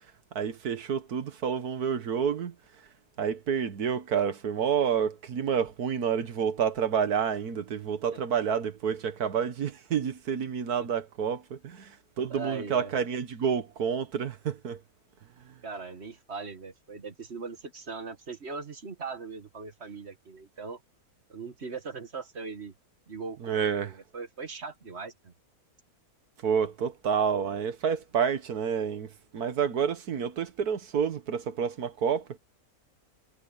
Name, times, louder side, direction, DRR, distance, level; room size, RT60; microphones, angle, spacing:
voice 1, 0.4-2.6 3.2-14.8 15.4-15.6 23.4-23.9 26.4-32.4, right 7 dB, 80° right, 1.9 m, -29 dB
voice 2, 12.3-12.9 15.6-20.8 21.3-22.7 23.1-25.3, right 4 dB, 45° right, 1.7 m, -40 dB
omnidirectional pair, 1.6 m